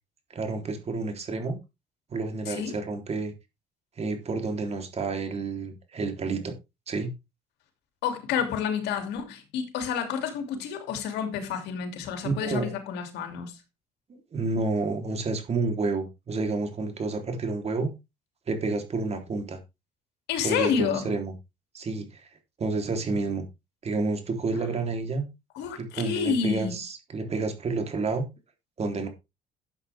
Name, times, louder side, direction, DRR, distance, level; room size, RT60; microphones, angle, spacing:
voice 1, 0.3-1.6 2.1-3.3 4.0-6.5 6.9-7.1 12.2-12.7 14.1-17.9 18.5-19.6 20.4-21.3 21.7-22.3 22.6-23.4 23.8-25.3 25.8-28.2 28.8-29.1, right 3 dB, 40° right, 3.6 m, -29 dB
voice 2, 8.0-13.6 20.3-21.2 25.5-26.8, left 7 dB, 85° left, 2.8 m, -29 dB
13.0 x 8.1 x 3.6 m
cardioid pair, 110°, 17 cm